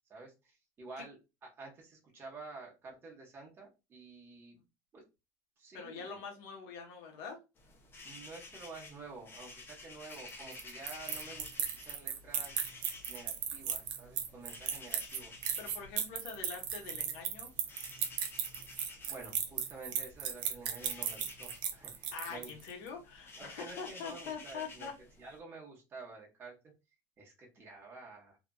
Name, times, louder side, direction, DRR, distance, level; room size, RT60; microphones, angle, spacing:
voice 1, 0.1-4.5 4.9-5.0 5.6-6.2 8.0-12.8 13.1-15.3 19.1-22.5 23.4-24.9 25.2-26.5 27.2-28.4, right 3 dB, 25° right, 1.1 m, -50 dB
voice 2, 5.7-7.4 15.6-17.5 22.1-24.9, left 6 dB, 75° left, 1.1 m, -44 dB
sound 1, 7.6-25.4, left 3 dB, 25° left, 0.8 m, -52 dB
sound 2, 10.1-22.7, right 8 dB, 60° right, 0.6 m, -36 dB
2.9 x 2.5 x 2.3 m
supercardioid pair, 130°, 9 cm